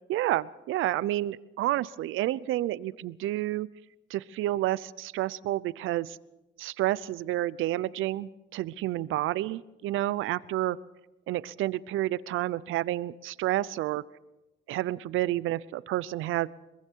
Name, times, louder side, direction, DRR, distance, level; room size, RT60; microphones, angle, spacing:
voice 1, 0.1-3.7 4.1-6.2 6.6-10.8 11.3-14.0 14.7-16.5, right 15 dB, 85° right, 19 dB, 0.7 m, -30 dB
24.5 x 22.5 x 4.7 m, 0.97 s
cardioid pair, 90°, 20 cm